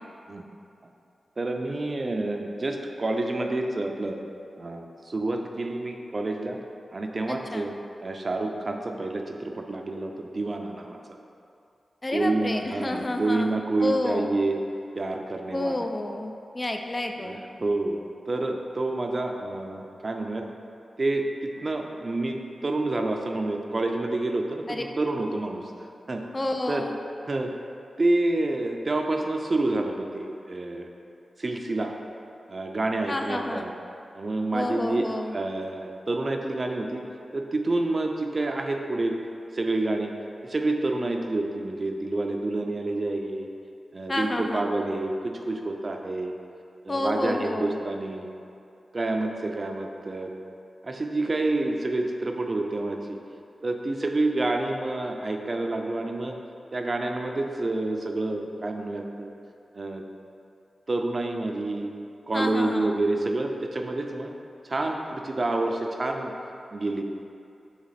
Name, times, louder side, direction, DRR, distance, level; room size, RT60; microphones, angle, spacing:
voice 1, 1.4-4.2 4.6-6.6 6.9-7.7 8.0-11.0 12.1-14.6 14.9-15.8 17.2-20.5 21.0-25.7 26.1-26.2 26.7-26.8 27.3-27.5 28.0-30.9 31.4-31.9 32.5-33.7 34.1-37.0 37.3-39.1 39.5-40.1 40.4-43.5 43.9-46.3 46.8-48.3 48.9-50.3 50.8-53.2 53.6-56.4 56.7-59.3 59.7-60.0 60.9-61.9 62.3-64.3 64.6-66.3 66.7-67.0, right 2 dB, 45° right, 3 dB, 0.4 m, -28 dB
voice 2, 7.3-7.7 12.0-14.3 15.5-17.4 24.7-24.8 26.3-27.0 33.1-33.7 34.5-35.4 44.1-44.7 46.9-47.8 62.3-63.0, left 1 dB, 35° left, 4 dB, 0.3 m, -30 dB
4.1 x 2.9 x 4.1 m, 2.6 s
cardioid pair, 40°, 0 cm